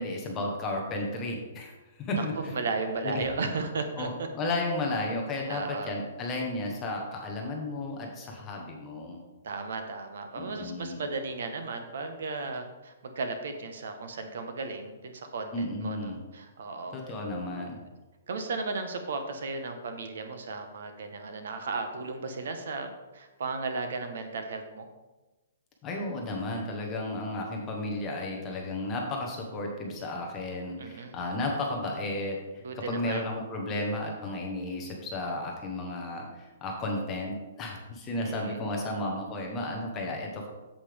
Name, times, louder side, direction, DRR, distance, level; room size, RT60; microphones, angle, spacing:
voice 1, 0.0-1.7 2.0-2.6 3.0-3.2 4.0-9.2 10.4-11.0 15.5-16.2 16.9-17.8 25.8-40.5, left 2 dB, 15° left, 0 dB, 1.0 m, -33 dB
voice 2, 2.1-4.3 5.5-5.9 9.4-17.0 18.3-22.9 23.1-24.9 30.8-31.1 32.6-33.3 38.2-38.6, right 3 dB, 55° right, 6 dB, 1.0 m, -35 dB
8.4 x 7.7 x 3.4 m, 1.1 s
hypercardioid pair, 180°, 0 cm